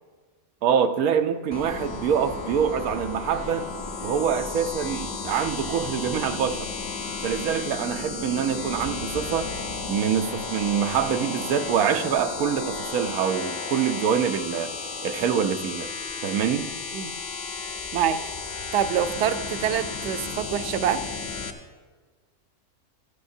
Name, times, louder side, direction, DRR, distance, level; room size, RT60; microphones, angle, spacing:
voice 1, 0.6-3.7 4.0-6.7 7.2-9.5 9.9-14.7 15.0-15.9 16.2-16.7, right 8 dB, 85° right, 8 dB, 1.1 m, -25 dB
sound 1, 1.5-21.5, left 4 dB, 40° left, 0.7 m, -33 dB
sound 2, 7.1-12.6, left 3 dB, 65° left, 1.3 m, -47 dB
voice 2, 17.9-18.2 18.7-21.0, right 9 dB, 65° right, 10 dB, 0.8 m, -25 dB
15.0 x 13.0 x 2.7 m, 1.5 s
omnidirectional pair, 1.5 m